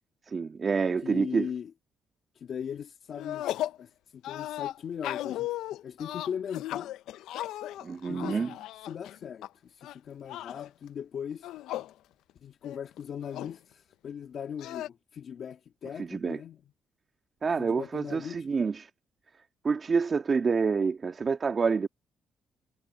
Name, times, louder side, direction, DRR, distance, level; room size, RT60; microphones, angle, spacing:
voice 1, 0.3-1.5 7.8-8.5 16.0-16.4 17.4-18.9 19.6-21.9, right 5 dB, 40° right, 1.9 m, -27 dB
voice 2, 1.0-1.7 2.3-3.4 3.8-5.5 5.8-6.9 8.1-8.6 8.8-11.5 12.4-16.6 17.4-18.4, left 8 dB, 60° left, 1.6 m, -39 dB
sound 1, 3.1-3.8 4.2-9.5 9.8-10.7 11.3-11.9 12.3-12.4 12.6-13.6 14.6-14.9, left 14 dB, 85° left, 0.5 m, -36 dB
cardioid pair, 90°, 0 cm